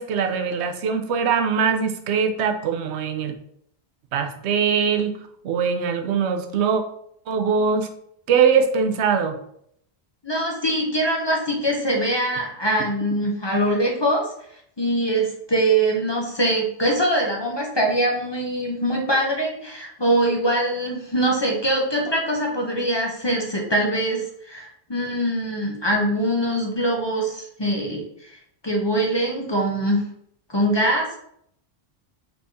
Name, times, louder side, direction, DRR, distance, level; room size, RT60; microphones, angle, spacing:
voice 1, 0.0-3.3 4.1-5.1 5.4-6.8 7.3-7.9 8.3-9.4, right 6 dB, 85° right, 7 dB, 0.9 m, -22 dB
voice 2, 10.2-14.2 14.8-28.0 28.6-30.1 30.5-31.2, right 1 dB, 30° left, -1 dB, 0.7 m, -23 dB
4.5 x 3.4 x 2.7 m, 0.69 s
omnidirectional pair, 1.1 m